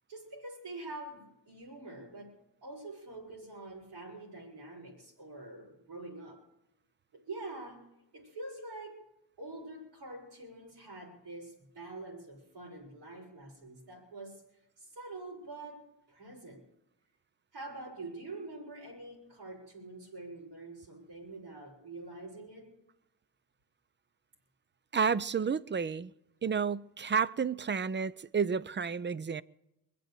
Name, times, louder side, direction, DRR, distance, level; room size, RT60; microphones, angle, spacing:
voice 1, 0.1-6.4 7.1-14.4 14.8-16.6 17.5-22.8, right 2 dB, 80° right, 5.8 m, -46 dB
voice 2, 24.9-26.1 26.4-29.4, right 6 dB, 25° right, 0.5 m, -31 dB
22.5 x 7.8 x 8.2 m
cardioid pair, 65°, 42 cm